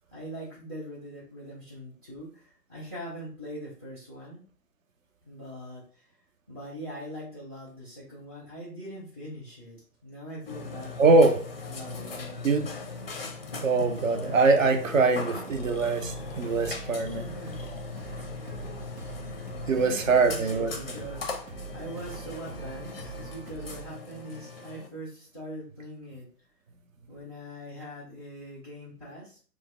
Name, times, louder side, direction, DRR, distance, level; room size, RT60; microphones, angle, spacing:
voice 1, 0.1-4.5 5.2-6.1 6.5-10.9 11.6-12.4 17.1-17.7 19.7-26.3 27.1-29.4, equal, 15° right, -7 dB, 0.4 m, -42 dB
Burping eructation, 10.5-24.9, left 4 dB, 40° left, 0.4 m, -39 dB
voice 2, 11.0-11.4 12.4-12.7 13.6-17.3 19.7-20.7, right 3 dB, 55° right, 6 dB, 0.6 m, -23 dB
sound 1, 15.5-24.0, right 6 dB, 90° right, 0.8 m, -44 dB
3.2 x 2.0 x 3.5 m, 0.43 s
figure-of-eight pair, 130°, 49 cm